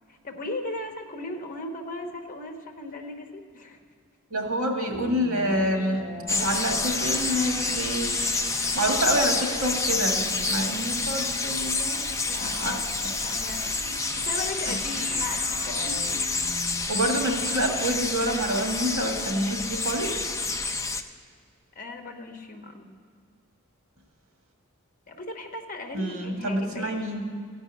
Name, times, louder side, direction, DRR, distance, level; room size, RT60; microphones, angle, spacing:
voice 1, 0.1-3.8 12.2-16.2 21.7-22.9 25.1-27.2, left 2 dB, 40° left, 4 dB, 1.0 m, -37 dB
voice 2, 4.3-6.0 6.3-8.1 8.7-12.1 12.4-12.8 16.9-20.3 25.9-27.2, right 1 dB, 80° right, 2 dB, 1.9 m, -27 dB
sound 1, 4.9-16.8, right 1 dB, 35° right, 1.7 m, -41 dB
sound 2, 6.3-21.0, left 3 dB, 15° left, 0.4 m, -28 dB
15.0 x 5.3 x 8.9 m, 2.1 s
head